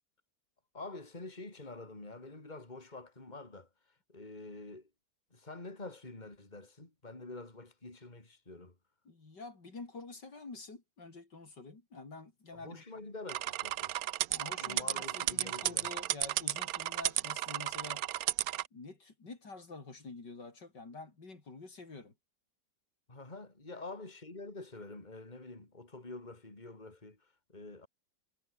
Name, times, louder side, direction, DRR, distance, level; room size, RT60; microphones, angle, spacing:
voice 1, 0.7-4.9 5.3-8.8 12.5-14.0 14.5-15.9 23.1-27.9, left 2 dB, 25° left, 3.8 m, -47 dB
voice 2, 9.1-12.8 14.3-18.1 18.7-22.1, left 3 dB, 65° left, 4.6 m, -48 dB
sound 1, 13.3-18.7, right 13 dB, 65° right, 1.0 m, -34 dB
omnidirectional pair, 2.0 m